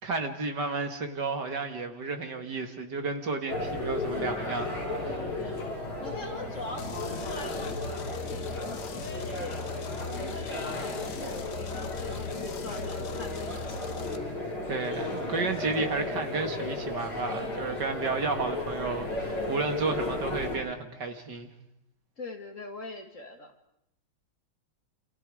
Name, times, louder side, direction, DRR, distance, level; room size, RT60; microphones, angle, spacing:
voice 1, 0.0-5.2 14.7-21.5, right 3 dB, 55° right, 6 dB, 2.6 m, -32 dB
sound 1, 3.5-20.6, left 2 dB, 75° left, 7.0 m, -34 dB
voice 2, 5.2-5.7 6.0-14.0 22.2-23.5, left 2 dB, 40° left, 5 dB, 2.3 m, -43 dB
sound 2, 6.8-14.2, left 6 dB, 55° left, 1.7 m, -40 dB
28.5 x 27.5 x 4.9 m, 0.77 s
omnidirectional pair, 2.2 m